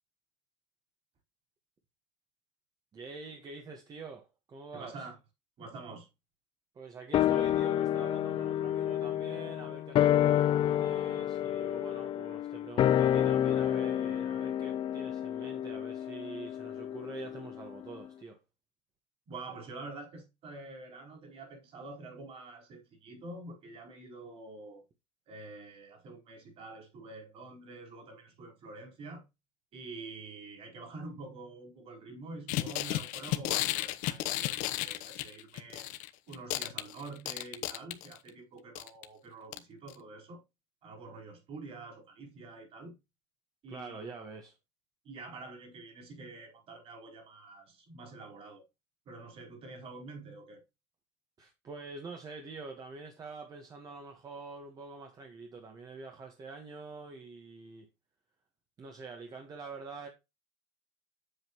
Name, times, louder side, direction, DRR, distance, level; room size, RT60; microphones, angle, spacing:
voice 1, 2.9-5.1 6.7-18.4 43.7-44.5 51.4-57.9 58.8-60.1, right 4 dB, 25° right, 1.4 m, -46 dB
voice 2, 4.7-5.2 5.6-6.1 19.3-24.8 25.3-29.2 29.7-35.9 36.3-40.4 40.8-43.0 43.6-44.0 45.0-48.6 49.1-50.6, right 3 dB, 45° right, 4.4 m, -47 dB
sound 1, 7.1-17.7 18.0-18.1, left 11 dB, 35° left, 0.5 m, -29 dB
sound 2, 32.5-36.1 36.3-38.3 38.8-39.0 39.5-39.6 39.9-40.0, left 15 dB, 65° left, 0.9 m, -33 dB
7.9 x 7.6 x 3.0 m
cardioid pair, 145°, 14 cm